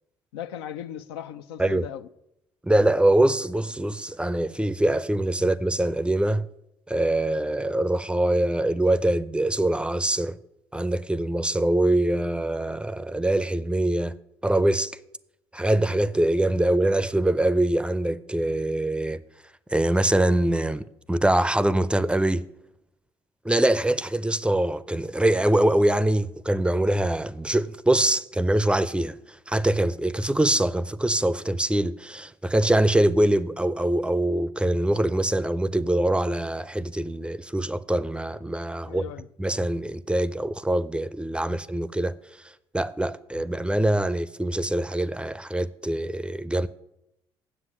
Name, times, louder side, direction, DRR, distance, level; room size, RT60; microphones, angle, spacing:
voice 1, 0.3-2.1 5.4-5.5 38.8-39.3, left 10 dB, 80° left, 0.4 m, -37 dB
voice 2, 2.6-6.5 6.9-10.4 10.7-14.1 14.4-15.0 15.5-19.2 19.7-22.5 23.4-39.1 39.4-46.7, right 1 dB, 10° right, 0.5 m, -24 dB
8.3 x 7.4 x 6.0 m
hypercardioid pair, 55°, 13 cm